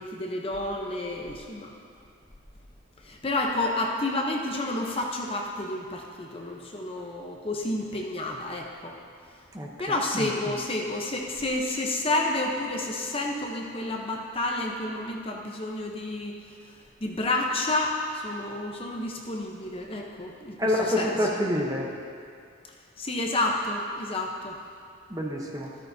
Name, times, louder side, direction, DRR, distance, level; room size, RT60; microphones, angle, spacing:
voice 1, 0.0-1.7 3.0-9.0 9.8-16.4 17.0-21.3 23.0-24.5, left 2 dB, 25° left, 0 dB, 0.8 m, -30 dB
voice 2, 20.6-21.9 25.1-25.7, left 1 dB, 15° right, -1 dB, 0.9 m, -26 dB
13.0 x 12.5 x 2.7 m, 2.3 s
head